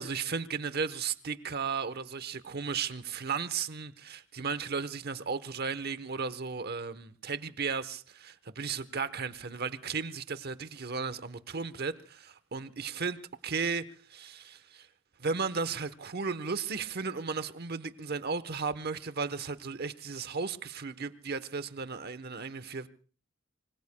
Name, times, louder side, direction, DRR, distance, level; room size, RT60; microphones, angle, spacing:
voice 1, 0.0-13.9 14.1-14.9 15.2-22.9, right 5 dB, 50° right, 1.0 m, -35 dB
25.5 x 25.0 x 2.2 m
head